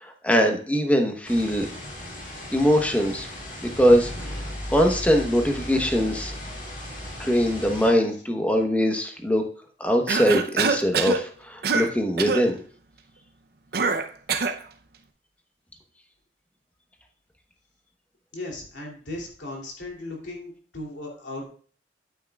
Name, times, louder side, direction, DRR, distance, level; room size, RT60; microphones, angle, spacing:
voice 1, 0.0-1.7 2.5-3.3 3.8-4.4 4.7-6.3 7.2-9.4 9.8-12.6, equal, 10° left, 3 dB, 1.0 m, -22 dB
sound 1, 1.3-7.9, left 1 dB, 50° left, 2.8 m, -36 dB
Cough, 10.1-11.2 11.6-11.9 12.2-12.5 13.7-14.6, right 5 dB, 60° right, 0.6 m, -24 dB
voice 2, 18.3-21.4, left 2 dB, 85° left, -1 dB, 2.8 m, -36 dB
9.2 x 8.4 x 2.3 m, 0.43 s
head